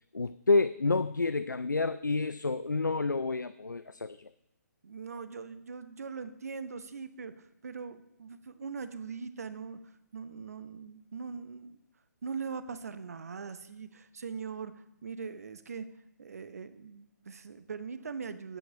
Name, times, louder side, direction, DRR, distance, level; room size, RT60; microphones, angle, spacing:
voice 1, 0.1-4.3, left 3 dB, 85° left, 15 dB, 0.4 m, -29 dB
voice 2, 4.8-9.8 10.1-11.8 12.2-14.7 15.0-15.9 16.2-18.6, right 5 dB, 55° right, 12 dB, 0.9 m, -41 dB
8.8 x 8.1 x 5.9 m, 0.84 s
figure-of-eight pair, 135°, 10 cm